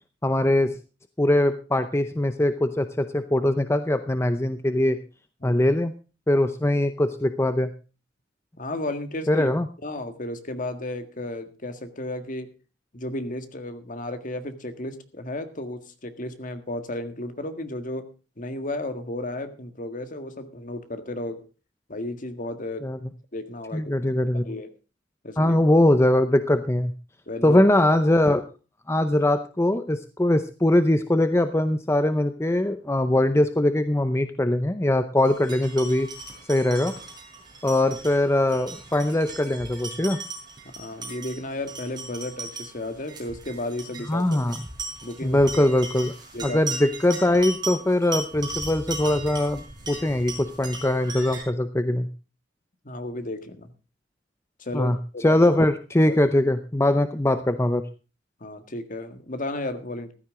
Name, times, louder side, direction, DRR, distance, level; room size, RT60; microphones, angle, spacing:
voice 1, 0.2-0.7 1.2-5.0 5.4-5.9 6.3-7.7 9.3-9.7 22.8-23.0 23.7-24.5 25.4-26.9 27.4-28.4 28.9-36.1 36.5-36.9 37.6-40.2 44.1-44.6 45.2-46.1 46.4-52.1 54.7-57.8, left 1 dB, 15° left, 10 dB, 0.7 m, -22 dB
voice 2, 8.6-9.5 9.8-12.5 12.9-18.1 18.4-21.4 21.9-22.9 23.3-24.0 24.4-24.7 25.2-25.6 27.3-27.6 40.7-44.6 45.0-45.4 46.3-46.6 52.8-53.7 54.6-55.4 56.1-56.2 58.4-60.1, left 1 dB, 45° left, 8 dB, 1.8 m, -33 dB
sound 1, 35.2-51.4, right 3 dB, 25° right, 5.2 m, -38 dB
15.0 x 13.0 x 3.7 m, 0.33 s
head